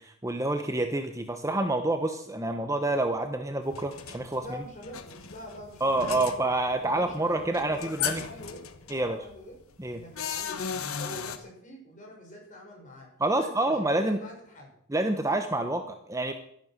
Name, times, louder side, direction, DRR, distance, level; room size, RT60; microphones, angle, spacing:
voice 1, 0.0-4.6 5.8-8.2 8.9-9.2 9.8-10.0 13.2-14.2 14.9-16.3, right 2 dB, 15° right, 7 dB, 1.0 m, -28 dB
sound 1, 3.7-11.4, left 7 dB, 85° left, 1.4 m, -37 dB
voice 2, 4.4-6.4 6.8-7.4 7.7-9.6 9.9-14.7, equal, 40° left, 0 dB, 6.1 m, -45 dB
12.5 x 11.5 x 7.5 m, 0.69 s
head